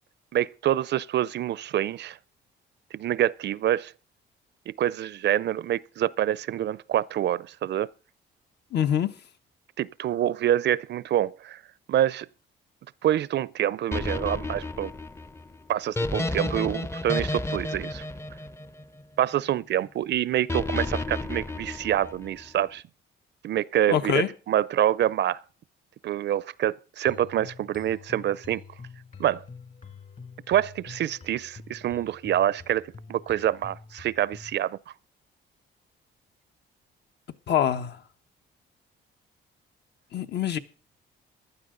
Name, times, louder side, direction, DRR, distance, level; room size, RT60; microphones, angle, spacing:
voice 1, 0.3-2.2 2.9-3.9 4.7-7.9 9.8-11.6 11.9-12.3 13.0-14.9 15.7-18.0 19.2-22.8 23.4-25.4 26.0-28.6 29.2-29.4 30.5-34.8, right 11 dB, 60° right, 0.5 m, -26 dB
voice 2, 8.7-9.1 23.9-24.3 37.5-38.0 40.1-40.6, left 9 dB, 60° left, 1.1 m, -24 dB
sound 1, 13.9-19.2 20.5-22.4, left 2 dB, 15° left, 0.6 m, -31 dB
sound 2, 27.0-34.6, left 5 dB, 40° left, 2.4 m, -47 dB
15.5 x 11.5 x 3.8 m
cardioid pair, 90°, 20 cm